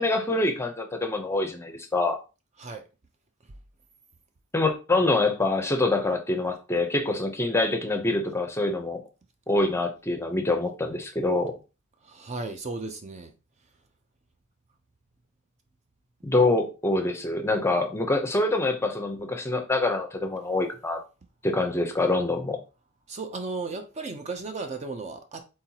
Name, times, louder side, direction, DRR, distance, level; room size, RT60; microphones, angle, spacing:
voice 1, 0.0-2.2 4.5-9.0 9.5-11.5 16.2-21.0 21.4-22.6, left 2 dB, 10° left, 0.6 m, -25 dB
voice 2, 12.0-13.3 23.1-25.4, right 3 dB, 35° right, 0.5 m, -35 dB
4.3 x 3.8 x 2.8 m
head